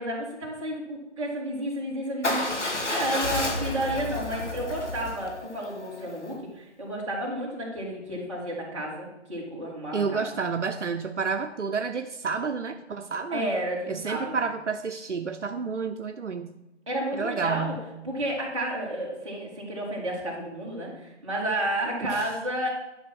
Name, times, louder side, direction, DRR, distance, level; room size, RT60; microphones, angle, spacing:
voice 1, 0.0-10.3 13.3-14.3 16.9-17.8 18.0-22.7, right 1 dB, 25° right, -6 dB, 3.0 m, -31 dB
Motorcycle / Engine starting / Idling, 2.2-6.3, left 2 dB, 80° left, 2.2 m, -31 dB
voice 2, 9.9-13.5 13.9-16.5 17.1-17.9 22.1-22.3, right 5 dB, 80° right, 7 dB, 0.8 m, -30 dB
10.5 x 5.5 x 6.1 m, 0.98 s
figure-of-eight pair, 170°, 35 cm